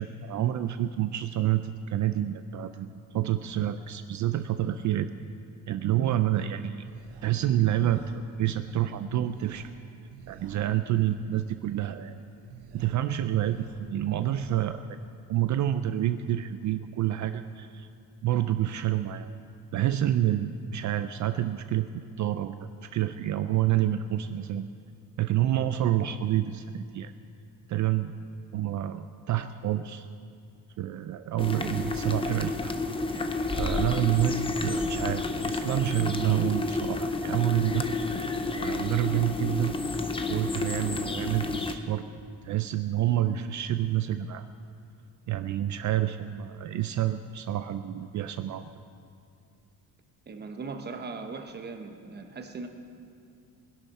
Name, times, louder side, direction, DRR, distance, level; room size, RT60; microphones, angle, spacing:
voice 1, 0.0-5.1 5.7-6.9 7.2-8.0 8.4-9.7 10.3-12.2 12.7-15.0 15.3-17.9 18.2-19.3 19.7-21.9 22.2-24.7 25.2-27.1 27.7-28.1 28.5-30.1 30.8-32.7 33.1-33.2 33.5-37.9 38.5-39.8 40.3-42.0 42.4-44.5 45.3-48.7, right 12 dB, 50° right, 10 dB, 0.4 m, -28 dB
sound 1, 6.4-14.7, right 6 dB, 75° right, 1.1 m, -52 dB
sound 2, 31.4-41.8, left 3 dB, 15° left, 0.5 m, -30 dB
voice 2, 50.3-52.7, right 4 dB, 25° right, 5 dB, 0.9 m, -39 dB
20.5 x 11.5 x 4.2 m, 2.4 s
cardioid pair, 165°, 40 cm